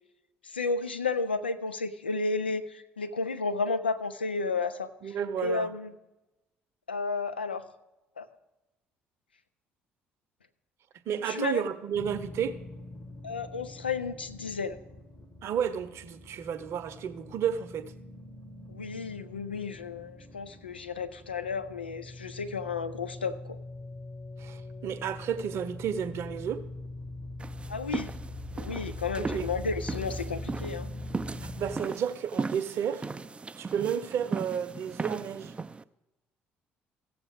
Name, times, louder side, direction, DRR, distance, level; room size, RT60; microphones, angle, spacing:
voice 1, 0.4-5.9 6.9-7.6 8.2-8.3 11.2-11.6 13.2-14.8 18.7-23.6 27.7-28.1 28.6-30.9, left 4 dB, 90° left, 0.4 m, -32 dB
voice 2, 5.0-5.7 11.1-12.6 15.4-17.9 24.4-26.6 29.2-29.5 31.4-33.1 33.6-35.5, right 8 dB, 55° right, 0.7 m, -32 dB
sound 1, 11.9-31.8, left 2 dB, 40° left, 1.6 m, -42 dB
sound 2, 27.4-35.8, right 4 dB, 20° right, 0.3 m, -37 dB
16.0 x 7.1 x 3.6 m
figure-of-eight pair, 50°, 5 cm